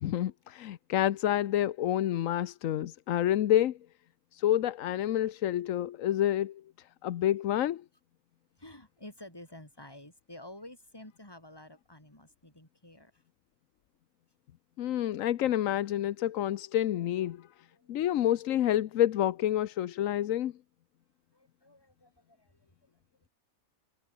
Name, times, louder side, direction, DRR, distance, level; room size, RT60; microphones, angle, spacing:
voice 1, 0.0-3.8 4.3-6.6 7.0-7.8 14.8-17.5 17.9-20.5, left 12 dB, 75° left, 1.1 m, -28 dB
voice 2, 8.6-13.2 17.2-17.3 17.7-18.0 21.3-23.0, left 1 dB, 15° left, 3.5 m, -51 dB
omnidirectional pair, 1.4 m